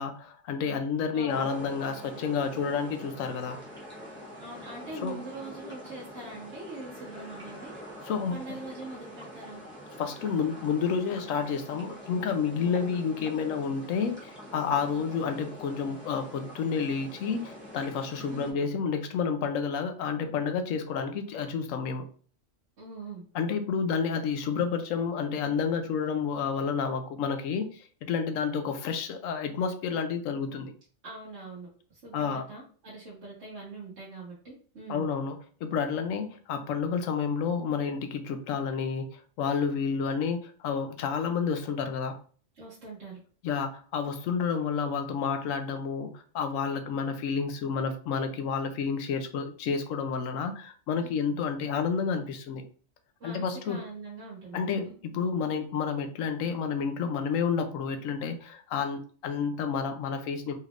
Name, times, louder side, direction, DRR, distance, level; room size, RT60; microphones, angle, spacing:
voice 1, 0.0-3.6 5.0-5.2 8.0-8.4 10.0-22.1 23.3-30.7 32.1-32.4 34.9-42.2 43.4-52.7 53.2-53.8 54.5-60.5, left 6 dB, 80° left, 7 dB, 1.0 m, -30 dB
voice 2, 1.1-1.5 4.4-7.8 8.3-9.6 12.5-13.0 18.3-18.6 22.8-23.2 31.0-35.1 42.5-43.2 53.2-54.7, right 2 dB, 60° right, -7 dB, 1.4 m, -43 dB
sound 1, 1.3-18.5, equal, 10° left, 1.0 m, -45 dB
4.1 x 3.3 x 2.4 m, 0.43 s
omnidirectional pair, 1.4 m